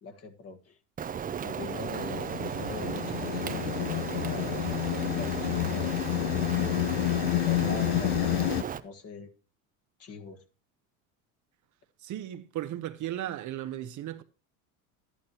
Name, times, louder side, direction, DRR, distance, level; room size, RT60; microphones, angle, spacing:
voice 1, 0.0-0.8 1.4-6.1 7.3-9.3 10.0-10.4, left 4 dB, 35° left, 1.6 m, -42 dB
Rain, 1.0-8.8, right 8 dB, 20° right, 0.5 m, -35 dB
sound 1, 1.5-8.6, left 19 dB, 65° left, 0.5 m, -30 dB
voice 2, 12.0-14.2, right 12 dB, 45° right, 0.8 m, -36 dB
12.0 x 11.0 x 2.9 m
supercardioid pair, 95°, 42 cm